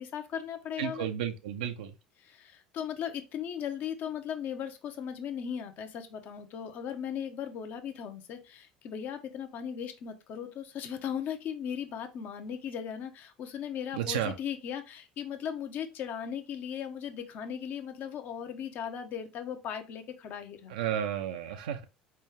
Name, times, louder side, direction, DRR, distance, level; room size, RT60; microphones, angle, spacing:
voice 1, 0.0-1.1 2.2-20.7, left 8 dB, 45° left, 0.9 m, -37 dB
voice 2, 0.8-1.9 14.0-14.3 20.7-21.8, right 9 dB, 70° right, 0.5 m, -32 dB
4.4 x 3.3 x 3.4 m
figure-of-eight pair, 65°, 4 cm